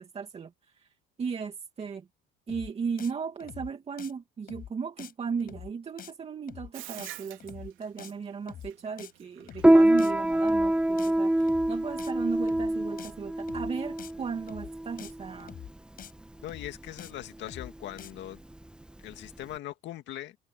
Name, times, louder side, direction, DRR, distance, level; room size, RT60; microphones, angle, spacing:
voice 1, 0.0-2.1 2.5-15.6, right 6 dB, 30° right, 2.3 m, -36 dB
sound 1, 2.5-2.7 3.0-3.1 3.4-3.7 4.0-4.1 4.5-4.7 5.0-5.1 5.4-5.7 6.0-6.1 6.5-6.7 7.0-7.1 7.4-7.7 8.0-8.1 8.5-8.7 9.0-9.1 9.4-9.7 10.0-10.1 10.5-10.7 11.0-11.1 11.4-11.7 12.0-12.1 12.5-12.7 13.0-13.1 13.4-13.7 14.0-14.1 14.5-14.7 15.0-15.1 15.4-15.7 16.0-16.1 16.5-16.7 17.0-17.1 17.4-17.7 18.0-18.1, left 9 dB, 45° left, 5.6 m, -45 dB
Bathtub (filling or washing), 6.7-12.1, right 15 dB, 70° right, 3.1 m, -47 dB
Piano, 9.6-19.6, right 1 dB, 5° right, 1.1 m, -26 dB
voice 2, 16.4-18.4 19.0-20.4, left 13 dB, 60° left, 2.1 m, -40 dB
cardioid pair, 125°, 21 cm